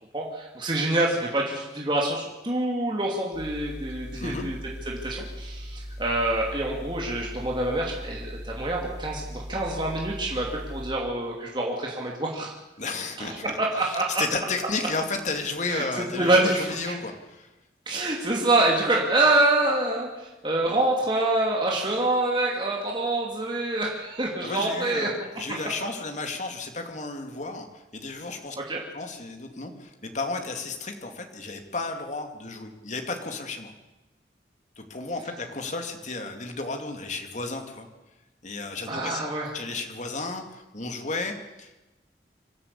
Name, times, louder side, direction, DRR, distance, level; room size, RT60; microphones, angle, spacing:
voice 1, 0.1-4.6 4.8-12.5 13.2-14.2 15.7-16.9 17.9-25.1 28.7-28.8 38.9-39.5, right 2 dB, 25° right, -2 dB, 2.8 m, -26 dB
sound 1, 3.3-10.9, equal, 75° left, 7.4 m, -39 dB
voice 2, 4.1-4.5 12.8-13.4 13.7-17.5 24.4-28.6 28.9-33.7 34.8-37.9 38.4-41.8, left 3 dB, 45° left, 5 dB, 2.6 m, -33 dB
26.0 x 13.0 x 8.5 m, 1.1 s
head